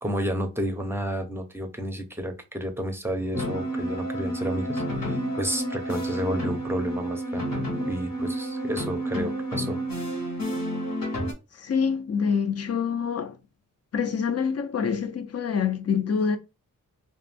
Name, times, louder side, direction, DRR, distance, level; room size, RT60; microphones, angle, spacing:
voice 1, 0.0-9.8, equal, 5° right, 0.6 m, -31 dB
sound 1, 3.3-11.3, right 1 dB, 70° left, 0.9 m, -30 dB
voice 2, 11.6-13.3 13.9-16.4, left 6 dB, 45° left, 0.5 m, -26 dB
2.4 x 2.1 x 3.3 m
wide cardioid pair, 80°, 35 cm